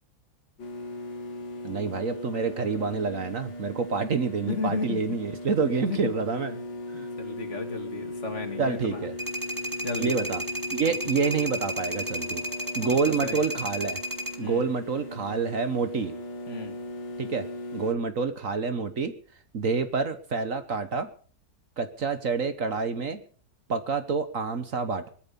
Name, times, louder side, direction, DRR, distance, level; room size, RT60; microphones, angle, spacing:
sound 1, 0.6-17.9, left 1 dB, 90° left, 2.7 m, -38 dB
voice 1, 1.6-6.6 6.9-7.1 8.6-9.1 10.0-10.4 10.7-12.4 12.7-14.0 14.4-16.1 17.2-19.1 19.5-21.1 21.8-23.2 23.7-25.1, right 5 dB, 50° right, 10 dB, 1.5 m, -28 dB
voice 2, 4.5-5.2 5.9-6.1 6.9-9.1 9.8-10.2 10.8-11.0 12.8-13.4 14.4-14.7 16.5-16.8, left 4 dB, 40° left, 5 dB, 2.9 m, -34 dB
sound 2, 9.2-14.4, right 1 dB, 10° right, 2.1 m, -33 dB
20.5 x 13.0 x 5.3 m, 0.43 s
omnidirectional pair, 1.9 m